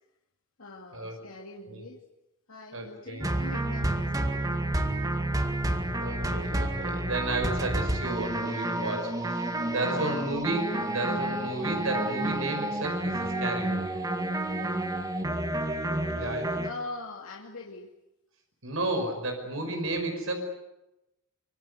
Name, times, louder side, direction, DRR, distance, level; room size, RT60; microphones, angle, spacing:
voice 1, 0.6-2.0 2.5-4.7 8.4-8.7 9.8-10.2 10.7-10.9 14.7-14.9 15.9-17.9 19.6-19.7, left 2 dB, 90° left, 0 dB, 2.6 m, -43 dB
voice 2, 2.7-3.2 5.9-14.0 16.1-16.6 18.6-20.4, right 2 dB, 75° right, 4 dB, 5.5 m, -32 dB
sound 1, 3.2-16.7, right 1 dB, 15° right, 2.0 m, -30 dB
25.0 x 24.5 x 8.2 m, 0.92 s
head